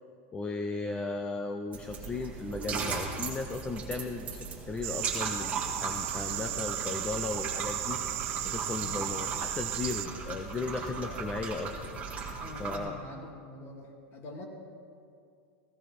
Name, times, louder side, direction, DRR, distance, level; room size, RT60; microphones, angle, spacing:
voice 1, 0.3-8.0 8.4-11.7 12.6-13.0, left 3 dB, 15° left, 5 dB, 0.6 m, -36 dB
sound 1, 1.7-12.8, right 4 dB, 20° right, 1.9 m, -37 dB
sound 2, 4.8-10.1, right 17 dB, 40° right, 0.4 m, -35 dB
voice 2, 6.2-6.7 8.8-9.1 10.3-10.4 11.0-11.2 12.4-14.5, left 2 dB, 35° left, 1 dB, 2.4 m, -46 dB
16.0 x 15.0 x 4.2 m, 2.3 s
supercardioid pair, 155°, 7 cm